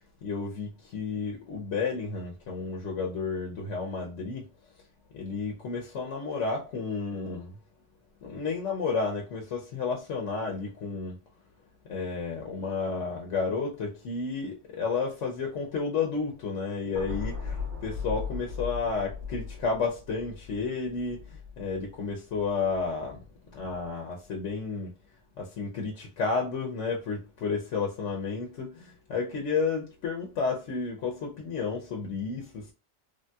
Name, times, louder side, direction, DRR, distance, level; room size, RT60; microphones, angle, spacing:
voice 1, 0.2-4.5 5.1-7.5 8.2-11.2 11.9-23.2 23.5-24.9 25.4-32.7, left 4 dB, 80° left, 1.0 m, -32 dB
sound 1, 16.9-23.2 23.6-23.9, left 5 dB, 85° right, 1.6 m, -38 dB
3.3 x 2.2 x 2.6 m
omnidirectional pair, 1.2 m